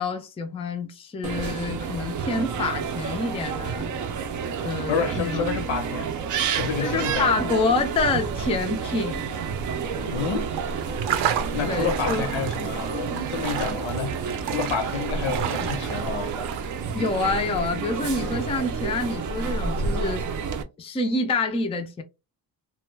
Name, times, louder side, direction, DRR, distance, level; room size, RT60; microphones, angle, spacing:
voice 1, 0.0-3.9 4.6-5.4 6.8-9.2 11.6-12.3 16.9-20.2 20.8-22.0, left 3 dB, 15° left, 0.3 m, -27 dB
sound 1, 1.2-20.6, right 5 dB, 45° right, 0.5 m, -29 dB
voice 2, 4.9-6.1 6.6-7.4 10.0-10.5 11.5-16.3, left 6 dB, 85° left, 0.8 m, -29 dB
sound 2, 10.3-17.9, right 9 dB, 85° right, 0.6 m, -33 dB
2.3 x 2.1 x 3.1 m
cardioid pair, 125°, 43 cm